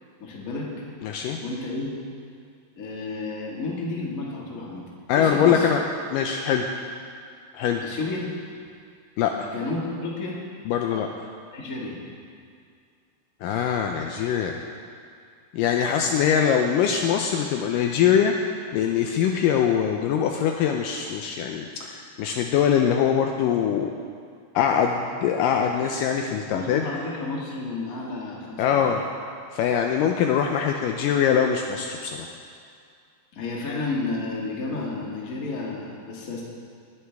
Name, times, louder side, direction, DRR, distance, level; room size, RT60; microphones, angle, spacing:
voice 1, 0.2-0.7 1.4-1.9 2.7-4.8 5.1-5.7 7.8-8.3 9.4-10.4 11.5-12.0 26.5-28.8 33.3-36.4, left 3 dB, 35° left, -4 dB, 1.6 m, -31 dB
voice 2, 1.0-1.4 5.1-5.8 6.1-6.7 7.5-7.8 9.2-9.5 10.7-11.3 13.4-14.6 15.5-18.3 18.7-23.9 24.6-26.9 28.6-29.0 29.5-32.3, left 8 dB, 80° left, 3 dB, 2.1 m, -23 dB
19.5 x 9.8 x 3.5 m, 2.3 s
omnidirectional pair, 4.2 m